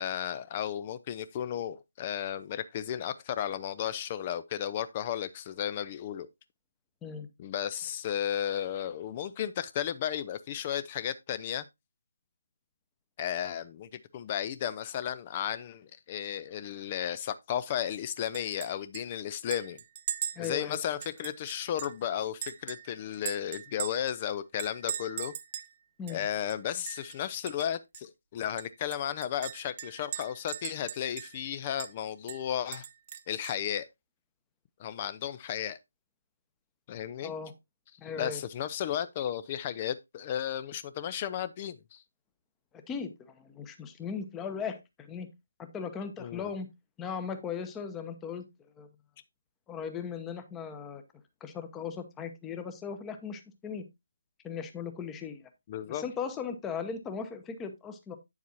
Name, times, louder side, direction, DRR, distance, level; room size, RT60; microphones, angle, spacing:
voice 1, 0.0-6.3 7.4-11.6 13.2-19.8 20.4-25.3 26.1-32.9 33.3-33.9 34.8-35.8 36.9-37.3 38.0-42.0 46.2-46.5 55.7-56.0, left 10 dB, 25° left, 0.4 m, -34 dB
Chink clink, 18.3-18.7 18.9-19.0 19.5-22.0 22.4-24.1 24.6-25.7 26.1-26.2 26.5-27.2 27.5-27.6 27.9-28.0 28.6-31.5 31.8-31.9 32.3-33.7, right 9 dB, 30° right, 0.5 m, -39 dB
voice 2, 20.4-20.8 26.0-26.2 37.2-37.5 38.0-38.4 42.9-45.3 45.6-46.7 47.0-48.4 48.8-48.9 49.7-51.0 51.4-53.8 54.4-55.4 55.9-58.2, left 6 dB, 10° left, 0.8 m, -38 dB
9.1 x 7.2 x 2.8 m
figure-of-eight pair, 150°, 0 cm